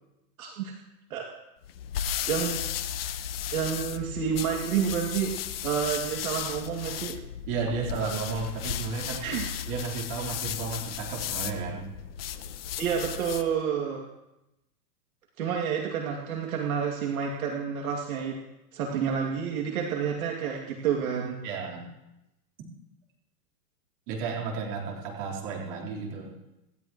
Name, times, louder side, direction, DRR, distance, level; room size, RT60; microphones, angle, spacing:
voice 1, 0.4-0.7 1.1-1.2 2.3-2.6 3.5-5.3 5.6-7.2 9.2-9.5 12.8-14.0 15.4-18.4 18.7-21.4, right 7 dB, 55° right, -1 dB, 2.6 m, -29 dB
sound 1, 1.6-13.5, left 10 dB, 35° left, 0.8 m, -35 dB
voice 2, 7.5-9.3 9.7-11.9 21.4-21.9 24.1-26.3, right 5 dB, 30° right, -3 dB, 4.1 m, -33 dB
27.0 x 12.5 x 3.1 m, 0.92 s
supercardioid pair, 175°, 50 cm